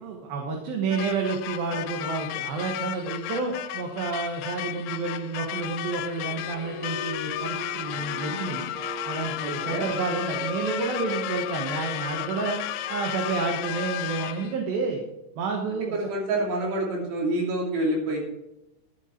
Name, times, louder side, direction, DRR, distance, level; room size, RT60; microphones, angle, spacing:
voice 1, 0.0-8.6 9.0-12.6 12.9-15.0 15.4-16.1, right 4 dB, 65° right, 2 dB, 2.9 m, -30 dB
sound 1, 0.9-14.6, left 14 dB, 80° left, 2.5 m, -34 dB
sound 2, 6.3-13.6, right 1 dB, 5° right, 1.8 m, -39 dB
voice 2, 9.4-9.9 15.9-18.2, right 1 dB, 85° right, -1 dB, 4.9 m, -27 dB
12.0 x 10.5 x 4.4 m, 0.92 s
omnidirectional pair, 4.8 m